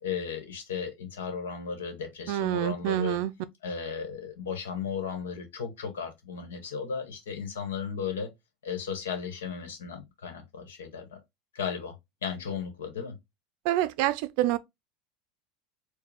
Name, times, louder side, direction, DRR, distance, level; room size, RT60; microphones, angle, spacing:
voice 1, 0.0-3.2 3.6-8.3 8.6-11.2 11.5-12.0 12.2-13.2, left 6 dB, 85° left, 1.2 m, -35 dB
voice 2, 2.3-3.3 13.6-14.6, right 14 dB, 65° right, 0.4 m, -27 dB
4.7 x 2.3 x 3.4 m
hypercardioid pair, 95°, 0 cm